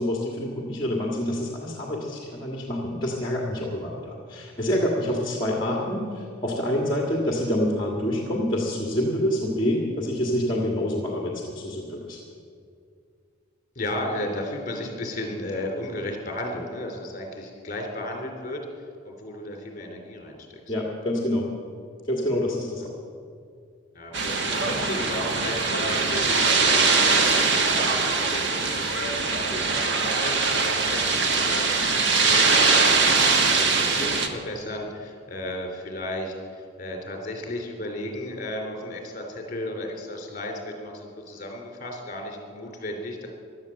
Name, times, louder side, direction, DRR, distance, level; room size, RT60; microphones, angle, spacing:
voice 1, 0.0-12.2 20.7-21.5 22.1-22.9, left 1 dB, 25° left, -1 dB, 1.8 m, -27 dB
voice 2, 13.7-18.6 19.0-20.7 23.9-31.8 32.2-43.3, left 1 dB, 40° left, 2 dB, 3.3 m, -34 dB
sound 1, 24.1-34.3, right 4 dB, 60° right, 1.5 m, -22 dB
16.0 x 11.5 x 7.7 m, 2.3 s
head